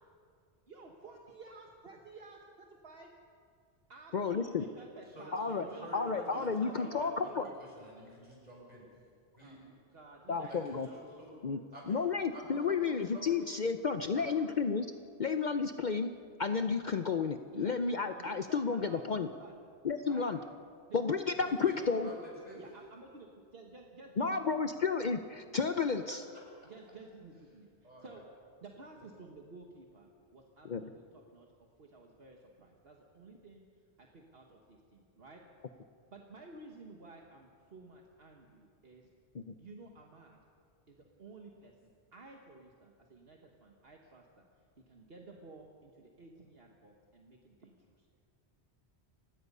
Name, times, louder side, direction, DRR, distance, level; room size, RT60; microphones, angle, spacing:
voice 1, 0.7-2.4 2.8-3.1 3.9-7.5 9.4-11.6 17.5-17.8 18.2-19.5 20.0-20.3 20.9-21.5 22.5-23.3 23.5-24.8 26.6-28.2 28.6-31.5 31.8-33.7 34.0-35.4 36.1-39.1 39.6-40.4 40.9-44.5 44.9-48.1, right 3 dB, 60° right, 1 dB, 1.6 m, -53 dB
voice 2, 4.1-4.6 5.3-5.7 5.9-7.4 10.3-10.9 11.4-11.6 11.9-14.9 15.2-16.1 16.4-19.3 19.8-20.4 20.9-22.1 24.2-26.2 30.6-30.8 39.3-39.5, left 5 dB, 50° left, 8 dB, 0.7 m, -32 dB
voice 3, 5.1-8.8 9.4-9.6 10.5-11.3 11.7-12.0 12.3-13.5 14.1-14.3 21.4-22.6 26.1-26.4 27.8-28.2, equal, 40° right, -3 dB, 6.8 m, -49 dB
29.5 x 16.5 x 5.5 m, 2.3 s
omnidirectional pair, 1.1 m